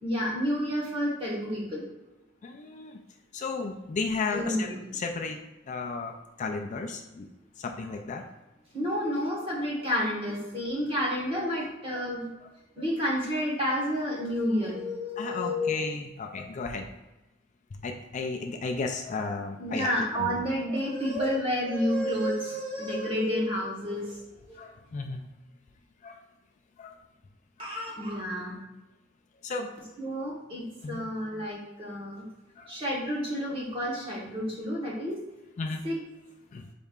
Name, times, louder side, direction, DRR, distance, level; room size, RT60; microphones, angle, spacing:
voice 1, 0.0-1.8 4.3-4.8 8.7-12.3 12.8-15.9 19.6-24.2 24.5-24.6 27.6-28.6 30.0-32.2 32.7-35.2 35.8-36.0, equal, 30° right, -4 dB, 1.3 m, -30 dB
voice 2, 2.4-3.0 3.3-4.7 4.9-5.4 5.7-6.1 6.4-7.3 7.6-8.2 11.9-12.0 15.2-16.9 17.8-20.4 24.6-25.2 26.0-26.2 26.8-27.0 27.6-27.7 29.4-29.7 30.8-31.0 32.6-32.7 35.6-35.8 36.5-36.6, left 4 dB, 40° left, 4 dB, 0.4 m, -34 dB
5.3 x 4.2 x 2.4 m, 1.0 s
head